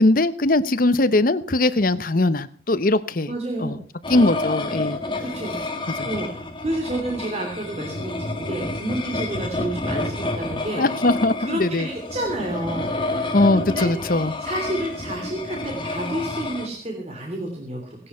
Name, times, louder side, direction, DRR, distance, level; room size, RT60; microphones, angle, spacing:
voice 1, 0.0-3.3 3.6-3.8 4.1-5.0 6.0-6.2 10.7-11.9 13.3-14.3, left 2 dB, 50° left, 13 dB, 0.9 m, -20 dB
voice 2, 3.2-3.8 4.1-4.3 5.2-5.7 6.0-10.9 11.4-14.0 14.4-18.1, right 1 dB, 35° right, 1 dB, 3.0 m, -30 dB
sound 1, 4.0-16.7, left 2 dB, 25° left, 2.1 m, -29 dB
18.0 x 11.0 x 5.6 m, 0.42 s
head